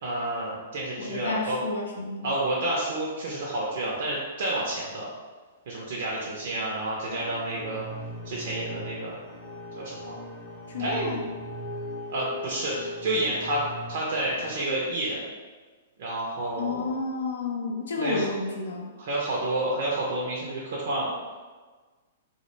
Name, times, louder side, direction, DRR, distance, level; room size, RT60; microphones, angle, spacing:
voice 1, 0.0-1.6 2.2-5.1 5.7-7.9 8.3-9.2 9.8-10.2 10.8-11.2 12.1-15.2 16.0-16.9 18.0-18.3 19.0-21.1, right 1 dB, 55° right, -4 dB, 0.4 m, -29 dB
voice 2, 1.0-2.3 10.7-11.2 16.6-18.9, left 3 dB, 65° left, 1 dB, 0.3 m, -31 dB
sound 1, 7.1-14.6, left 1 dB, 10° left, 0.6 m, -39 dB
2.1 x 2.1 x 3.0 m, 1.4 s
figure-of-eight pair, 110°, 0 cm